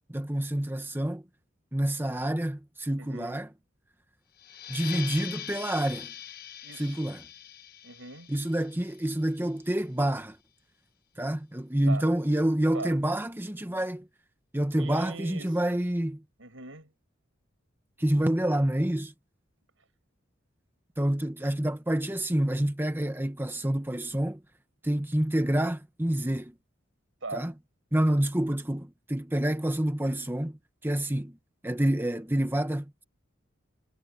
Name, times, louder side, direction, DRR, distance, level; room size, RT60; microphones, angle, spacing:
voice 1, 0.1-1.2 1.7-3.5 4.7-6.1 6.8-7.2 8.3-10.4 11.2-14.1 14.5-16.2 18.0-19.1 21.0-24.4 24.8-26.5 27.3-27.5 27.9-30.6 30.8-31.3 31.6-33.0, right 1 dB, 10° right, 1.1 m, -28 dB
voice 2, 3.0-3.4 6.6-7.0 7.8-8.3 11.8-12.1 12.7-13.0 14.7-15.8 16.4-16.9 27.2-27.5 28.1-28.2, right 3 dB, 85° right, 5.6 m, -41 dB
sound 1, 4.4-9.6, left 10 dB, 50° left, 1.1 m, -42 dB
head